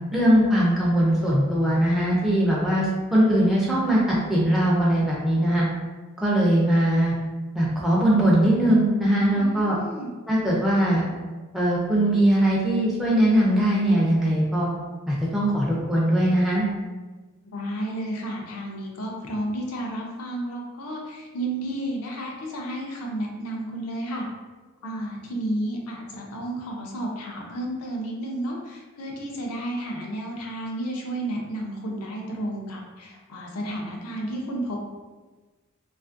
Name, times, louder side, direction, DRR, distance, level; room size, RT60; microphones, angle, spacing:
voice 1, 0.1-2.9 3.1-4.0 4.3-5.6 6.2-7.1 7.6-9.8 10.3-11.0 11.5-14.7 15.1-16.7, right 1 dB, ahead, -6 dB, 0.3 m, -20 dB
voice 2, 9.3-10.1 17.4-24.3 24.8-34.8, right 1 dB, 90° left, 0 dB, 0.5 m, -32 dB
2.5 x 2.4 x 2.4 m, 1.3 s
head